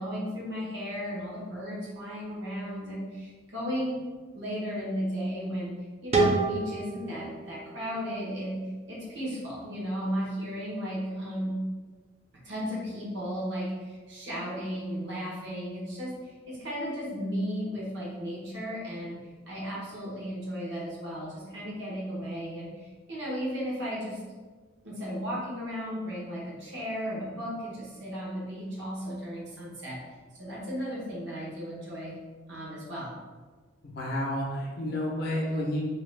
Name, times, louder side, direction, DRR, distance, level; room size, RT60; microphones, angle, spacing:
voice 1, 0.0-4.0 4.3-5.7 6.0-11.6 12.4-19.2 19.5-24.2 24.8-30.0 30.3-32.2 32.5-33.1, equal, 60° right, -6 dB, 1.0 m, -35 dB
sound 1, 6.1-9.0, right 3 dB, 30° right, 0.3 m, -29 dB
voice 2, 33.8-35.8, left 1 dB, 50° left, -3 dB, 0.6 m, -30 dB
2.7 x 2.3 x 3.3 m, 1.4 s
head